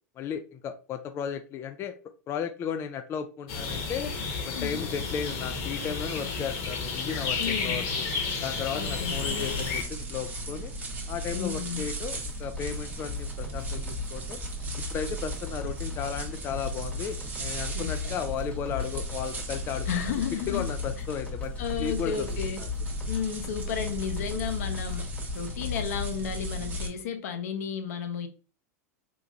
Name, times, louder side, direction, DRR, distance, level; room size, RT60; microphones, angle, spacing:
voice 1, 0.2-2.0 2.3-4.1 4.4-8.1 8.4-10.7 11.1-14.4 14.9-20.2 20.5-22.7, left 7 dB, 30° left, 0.3 m, -35 dB
sound 1, 3.5-9.8, left 4 dB, 55° left, 1.0 m, -32 dB
voice 2, 4.5-4.9 7.4-7.8 8.7-9.2 11.3-11.9 17.7-18.2 19.9-20.7 21.6-22.6 23.1-25.1 25.3-28.3, left 7 dB, 75° left, 0.7 m, -33 dB
sound 2, 8.8-26.9, left 1 dB, 20° right, 0.8 m, -35 dB
sound 3, 12.1-26.0, left 3 dB, 15° left, 1.1 m, -42 dB
3.8 x 2.9 x 2.4 m
hypercardioid pair, 115°, 9 cm